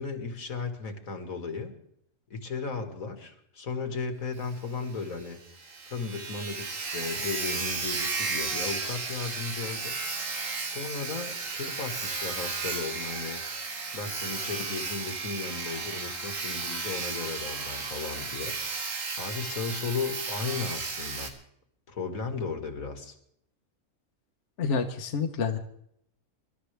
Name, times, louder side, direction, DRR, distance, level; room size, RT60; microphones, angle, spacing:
voice 1, 0.0-1.7 2.3-5.4 5.9-10.0 10.6-13.4 13.9-18.6 19.2-21.3 21.9-23.2, left 4 dB, 85° left, 6 dB, 2.2 m, -35 dB
Sawing, 4.4-4.5 4.8-4.9 5.3-5.4 5.6-21.3, right 4 dB, 70° right, 2.0 m, -34 dB
voice 2, 24.6-25.6, left 5 dB, 60° left, 5 dB, 1.3 m, -28 dB
25.0 x 12.0 x 3.4 m, 0.71 s
omnidirectional pair, 1.4 m